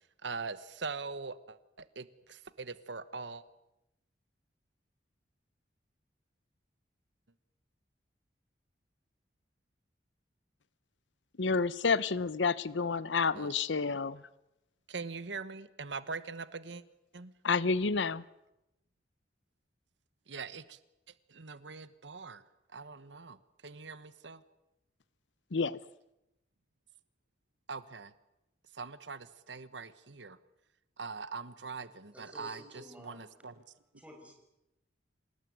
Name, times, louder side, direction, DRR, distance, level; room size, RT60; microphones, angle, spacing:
voice 1, 0.2-3.4 13.3-13.5 14.9-16.8 17.1-17.3 20.3-20.8 21.3-22.4 22.7-23.4 23.6-24.4 27.7-28.1 28.7-30.4 31.0-33.6, right 4 dB, 80° right, 14 dB, 1.2 m, -42 dB
voice 2, 11.4-14.2 17.4-18.2 25.5-25.8, left 4 dB, 90° left, 18 dB, 0.8 m, -29 dB
voice 3, 32.1-33.3 34.0-34.3, equal, 10° right, 2 dB, 6.2 m, -50 dB
27.5 x 19.0 x 9.4 m, 0.91 s
head